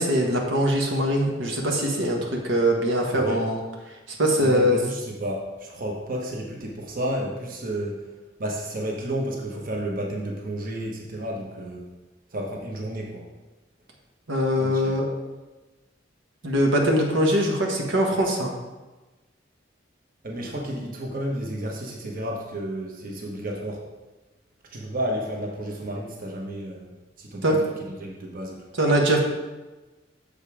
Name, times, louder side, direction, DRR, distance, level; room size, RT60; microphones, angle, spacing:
voice 1, 0.0-4.8 14.3-15.1 16.4-18.5 27.4-27.6 28.8-29.2, equal, 85° right, 0 dB, 1.3 m, -22 dB
voice 2, 4.4-8.1 8.4-11.9 12.3-13.3 14.6-14.9 20.2-23.8 24.7-26.9 27.2-27.6 28.0-28.6, right 1 dB, 50° right, -1 dB, 1.1 m, -31 dB
7.0 x 5.2 x 4.9 m, 1.2 s
head